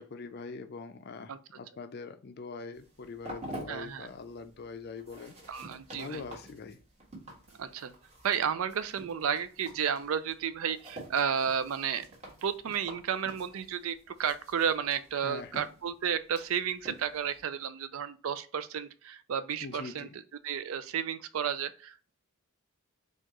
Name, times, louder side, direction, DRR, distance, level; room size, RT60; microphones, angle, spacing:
voice 1, 0.0-5.4 5.9-6.8 15.2-15.6 19.6-20.1, left 4 dB, 50° left, 9 dB, 0.4 m, -43 dB
sound 1, 2.7-17.4, right 1 dB, 30° right, 1.4 m, -49 dB
voice 2, 3.7-4.1 5.5-6.2 7.6-7.9 8.2-12.1 12.4-22.1, right 7 dB, 70° right, 12 dB, 0.4 m, -32 dB
4.4 x 2.4 x 2.9 m, 0.39 s
head